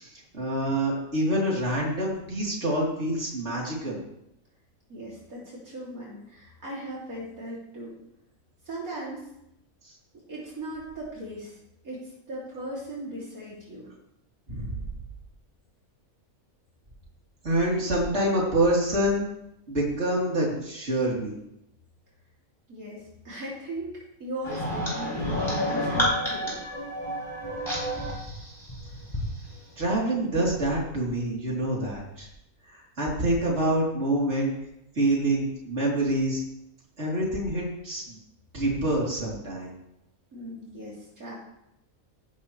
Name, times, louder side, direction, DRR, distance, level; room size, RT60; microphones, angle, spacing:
voice 1, 0.0-4.0 9.8-9.9 14.5-14.7 17.4-19.3 19.7-21.3 29.8-32.3 32.7-34.5 34.9-36.4 37.0-38.2 38.5-39.7, right 1 dB, 50° right, -4 dB, 3.9 m, -26 dB
voice 2, 4.9-8.0 8.7-9.3 10.3-11.6 11.8-13.8 22.7-23.9 24.2-26.6 40.3-41.4, right 1 dB, 75° right, -5 dB, 3.5 m, -38 dB
sound 1, 24.4-29.3, equal, 20° left, 5.2 m, -29 dB
17.5 x 11.5 x 3.3 m, 0.82 s
omnidirectional pair, 1.5 m